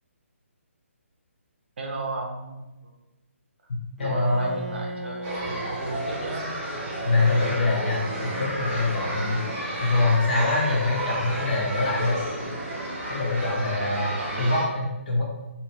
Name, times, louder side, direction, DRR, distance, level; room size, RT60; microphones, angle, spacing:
voice 1, 1.8-2.6 2.8-2.9 4.0-6.5 10.7-11.2 14.2-14.5, right 2 dB, 50° right, 1 dB, 0.6 m, -35 dB
voice 2, 4.0-4.5 7.0-9.4 9.8-12.2 13.1-15.2, left 2 dB, 40° left, -3 dB, 0.8 m, -24 dB
Bowed string instrument, 4.0-10.3, equal, 5° right, 0.4 m, -40 dB
sound 1, 5.2-14.7, right 1 dB, 25° right, 0.9 m, -32 dB
2.8 x 2.6 x 3.1 m, 1.0 s
figure-of-eight pair, 140°, 7 cm